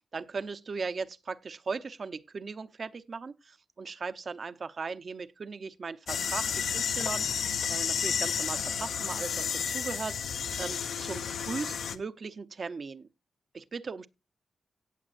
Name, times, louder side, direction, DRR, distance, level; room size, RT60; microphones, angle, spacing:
voice 1, 0.1-10.2 10.6-13.1 13.5-14.1, right 4 dB, 45° right, 0.7 m, -38 dB
sound 1, 6.1-12.0, left 7 dB, 85° left, 0.9 m, -31 dB
17.5 x 7.3 x 2.5 m
wide cardioid pair, 145°, 0 cm